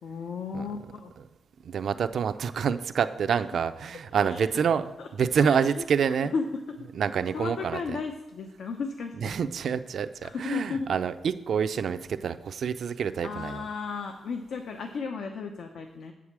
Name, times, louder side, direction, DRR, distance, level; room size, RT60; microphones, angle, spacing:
voice 1, 0.0-1.1 3.3-3.4 4.2-4.5 5.0-5.1 5.4-6.8 7.3-9.3 10.2-10.9 13.2-16.1, left 4 dB, 70° left, 4 dB, 0.8 m, -34 dB
voice 2, 1.6-6.3 6.9-7.8 9.2-13.7, right 7 dB, 60° right, 10 dB, 0.4 m, -27 dB
8.0 x 4.8 x 7.3 m, 1.1 s
wide cardioid pair, 155°, 0 cm